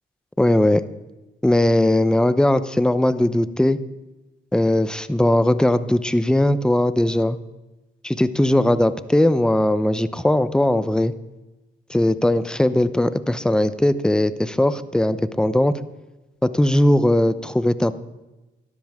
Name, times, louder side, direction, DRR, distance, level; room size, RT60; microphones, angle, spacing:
voice 1, 0.4-0.8 1.4-3.8 4.5-7.4 8.0-11.1 11.9-15.7 16.4-17.9, left 1 dB, 5° left, 13 dB, 0.7 m, -19 dB
18.5 x 13.0 x 3.7 m, 1.1 s
cardioid pair, 90°, 20 cm